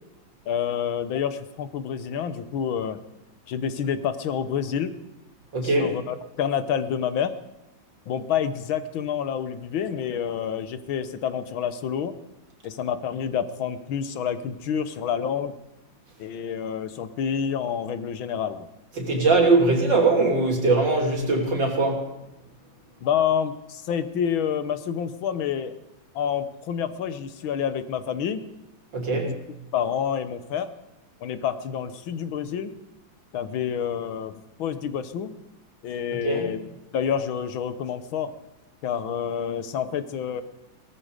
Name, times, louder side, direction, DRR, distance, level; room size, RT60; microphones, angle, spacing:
voice 1, 0.5-3.0 3.5-4.9 5.6-7.3 8.1-12.1 12.6-15.5 16.2-18.7 23.0-25.7 26.2-28.4 29.1-29.4 29.7-30.7 31.2-32.7 33.3-35.3 35.8-36.6 36.9-38.3 38.8-40.4, left 8 dB, 90° left, 12 dB, 1.9 m, -28 dB
voice 2, 5.5-5.9 19.0-22.1 28.9-29.3 36.2-36.5, right 3 dB, 65° right, 1 dB, 3.8 m, -21 dB
18.5 x 13.5 x 5.1 m, 0.95 s
omnidirectional pair, 2.1 m